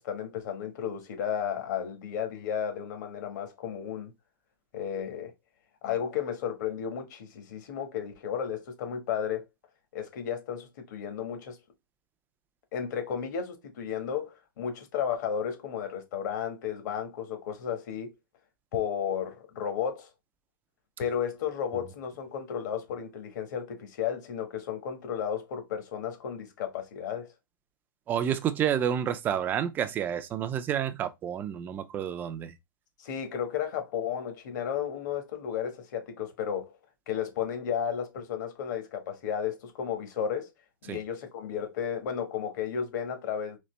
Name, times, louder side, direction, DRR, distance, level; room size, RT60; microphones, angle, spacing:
voice 1, 0.0-4.1 4.7-5.3 5.8-9.4 9.9-11.6 12.7-18.1 18.7-20.1 21.0-27.3 33.0-36.7 37.1-40.5 40.8-43.6, left 8 dB, 55° left, 1.5 m, -33 dB
voice 2, 28.1-32.5 40.9-41.0, right 9 dB, 15° right, 0.4 m, -29 dB
4.1 x 2.9 x 3.3 m
hypercardioid pair, 155°, 12 cm